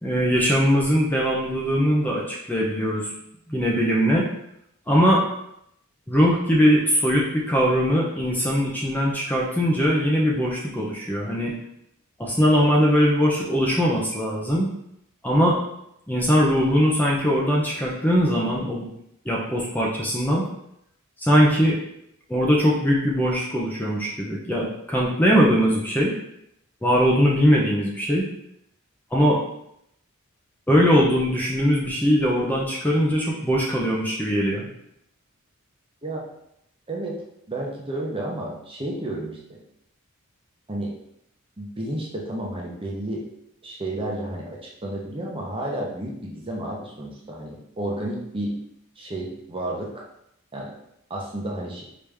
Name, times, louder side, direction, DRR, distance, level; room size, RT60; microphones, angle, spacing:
voice 1, 0.0-3.1 3.5-4.3 4.9-5.2 6.1-11.5 12.2-14.7 15.2-15.6 16.1-18.9 19.3-20.5 21.2-21.8 22.3-26.1 26.8-28.3 29.1-29.4 30.7-34.7, equal, 10° left, -3 dB, 0.7 m, -21 dB
voice 2, 36.9-37.2 37.5-39.6 40.7-40.9 41.6-43.3 43.6-48.6 49.0-50.0 50.5-50.7 51.1-51.8, right 1 dB, 25° right, -2 dB, 0.8 m, -31 dB
5.1 x 2.9 x 3.4 m, 0.76 s
head